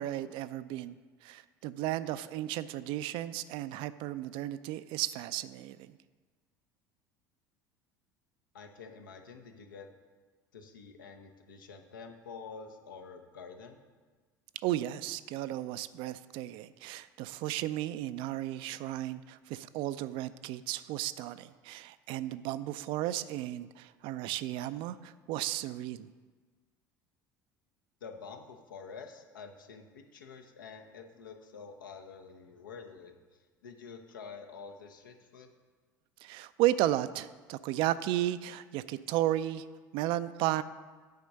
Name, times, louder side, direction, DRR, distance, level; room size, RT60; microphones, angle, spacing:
voice 1, 0.0-5.9 14.6-26.1 36.2-39.6 39.9-40.6, right 14 dB, 55° right, 13 dB, 0.4 m, -34 dB
voice 2, 8.5-9.9 10.5-13.8 28.0-35.5, left 5 dB, 75° left, 4 dB, 0.9 m, -48 dB
9.3 x 5.0 x 6.6 m, 1.4 s
figure-of-eight pair, 65°, 11 cm